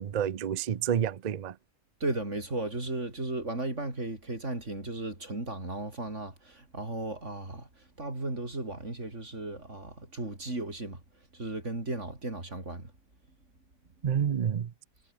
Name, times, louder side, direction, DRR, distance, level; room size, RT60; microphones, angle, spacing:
voice 1, 0.0-1.6 14.0-14.7, right 8 dB, 70° right, 0.4 m, -29 dB
voice 2, 2.0-7.7 8.0-11.0 11.3-12.9, right 2 dB, 50° right, 5.5 m, -35 dB
omnidirectional pair, 1.6 m